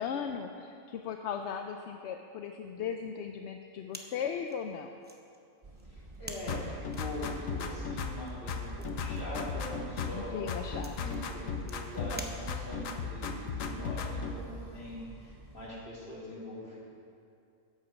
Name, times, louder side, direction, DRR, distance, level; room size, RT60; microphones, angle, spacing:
voice 1, 0.0-4.9 10.1-11.0, left 7 dB, 65° left, 5 dB, 0.8 m, -37 dB
sound 1, 3.9-12.9, right 1 dB, 10° right, 0.7 m, -50 dB
sound 2, 5.6-15.7, right 2 dB, 30° right, 1.0 m, -48 dB
voice 2, 5.9-10.5 10.9-16.8, equal, 45° left, -6 dB, 2.9 m, -42 dB
sound 3, 6.5-8.2 8.5-10.2 10.5-12.2 12.5-14.4, left 5 dB, 85° left, 1.2 m, -36 dB
13.0 x 8.3 x 5.1 m, 2.5 s
omnidirectional pair, 1.4 m